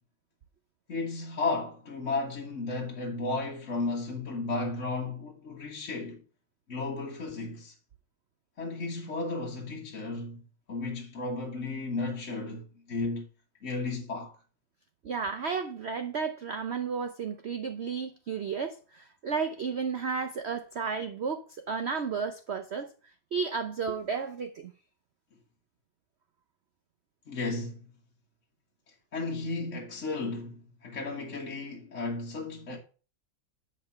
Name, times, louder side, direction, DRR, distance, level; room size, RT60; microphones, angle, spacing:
voice 1, 0.9-6.2 6.7-7.7 8.6-10.4 10.7-13.2 13.6-14.3 27.3-27.9 28.9-32.8, left 3 dB, 40° left, 1.7 m, -34 dB
voice 2, 15.0-22.9 23.3-24.7, right 5 dB, 85° right, 0.5 m, -33 dB
8.3 x 5.2 x 5.7 m
omnidirectional pair, 2.1 m